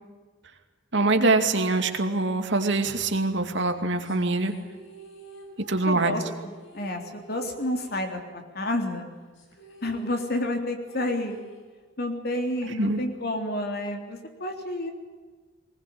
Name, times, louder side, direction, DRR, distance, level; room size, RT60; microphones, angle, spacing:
voice 1, 0.9-4.5 5.6-6.2 12.7-13.0, right 2 dB, 70° right, 6 dB, 2.5 m, -24 dB
sound 1, 4.0-8.7 8.9-9.0 9.3-12.0, right 1 dB, 90° left, 6.2 m, -50 dB
voice 2, 5.9-9.1 9.8-11.4 12.0-14.9, left 1 dB, 55° left, 4 dB, 3.4 m, -30 dB
21.0 x 20.0 x 8.8 m, 1.4 s
head